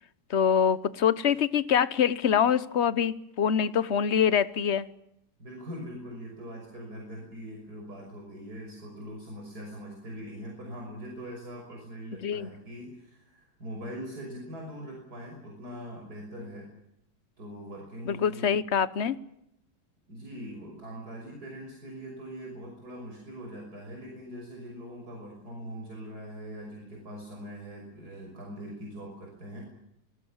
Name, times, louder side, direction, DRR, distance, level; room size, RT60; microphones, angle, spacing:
voice 1, 0.3-4.9 12.2-12.5 18.0-19.2, left 8 dB, 45° left, 16 dB, 1.2 m, -25 dB
voice 2, 5.4-16.7 17.4-18.5 20.1-29.6, equal, 60° right, -1 dB, 6.5 m, -42 dB
27.0 x 20.5 x 7.3 m, 0.80 s
omnidirectional pair, 1.9 m